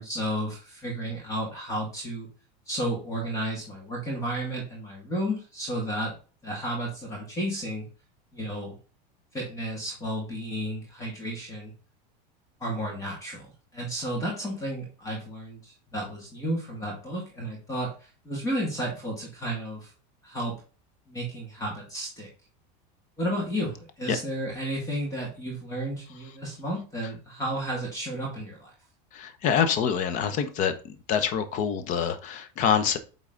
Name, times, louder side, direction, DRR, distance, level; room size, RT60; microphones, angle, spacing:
voice 1, 0.0-2.3 2.7-6.1 6.4-7.9 8.3-8.8 9.3-11.7 12.6-19.9 20.2-20.6 21.1-22.3 23.2-28.7, equal, 15° left, -2 dB, 2.4 m, -32 dB
voice 2, 29.1-30.7 31.1-33.0, left 7 dB, 35° left, 10 dB, 1.0 m, -25 dB
8.6 x 4.0 x 3.9 m, 0.35 s
supercardioid pair, 165°, 21 cm